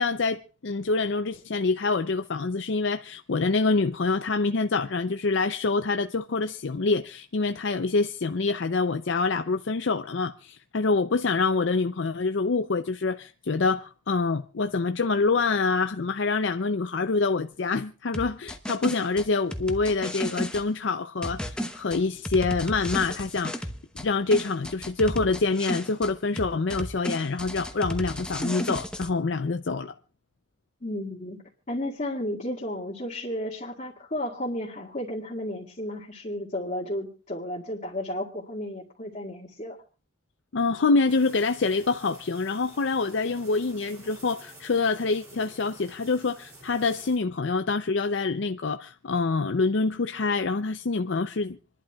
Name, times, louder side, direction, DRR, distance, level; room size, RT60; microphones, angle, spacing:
voice 1, 0.0-23.7 24.0-29.9 40.5-51.6, left 3 dB, 60° left, 0.5 m, -26 dB
sound 1, 18.1-20.6 21.2-24.1 24.3-26.1 26.4-29.1, equal, 5° left, 0.9 m, -33 dB
voice 2, 30.8-31.4 31.7-39.8, left 1 dB, 40° left, 2.0 m, -33 dB
sound 2, 41.1-47.2, right 1 dB, 15° right, 3.1 m, -50 dB
28.0 x 11.5 x 2.3 m
head